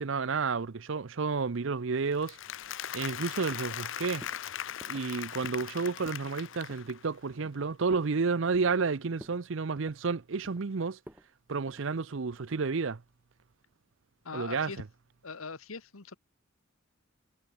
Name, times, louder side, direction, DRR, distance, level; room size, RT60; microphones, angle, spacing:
voice 1, 0.0-2.4 2.9-4.2 4.9-11.0 11.5-13.0 14.3-14.7, right 4 dB, 65° right, 0.6 m, -31 dB
Applause, 2.1-7.2, left 10 dB, 65° left, 0.5 m, -39 dB
sound 1, 2.6-3.2 3.5-3.9 4.2-4.4 4.8-5.1 5.4-5.7 6.0-6.3 6.7-6.9 7.3-8.1 8.5-8.9 9.2-9.4 9.7-10.7 11.1-11.3 11.7-11.9 12.3-12.6, equal, 10° right, 3.4 m, -52 dB
voice 2, 14.2-14.8 15.2-16.2, left 4 dB, 90° left, 1.4 m, -41 dB
head